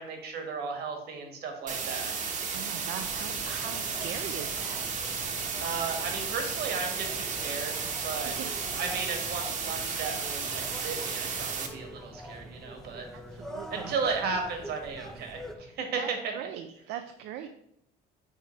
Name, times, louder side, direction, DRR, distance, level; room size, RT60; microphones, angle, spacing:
voice 1, 0.0-2.1 5.6-7.8 8.0-8.3 8.7-13.0 13.7-16.3, right 5 dB, 70° right, 4 dB, 1.6 m, -35 dB
sound 1, 1.7-11.7, right 5 dB, 50° right, 1.1 m, -33 dB
voice 2, 2.5-4.8 8.2-8.5 13.1-14.0 16.0-17.5, right 10 dB, 90° right, 7 dB, 0.5 m, -40 dB
sound 2, 3.0-15.6, equal, 5° left, 0.7 m, -45 dB
6.4 x 3.4 x 5.8 m, 0.78 s
cardioid pair, 110°, 17 cm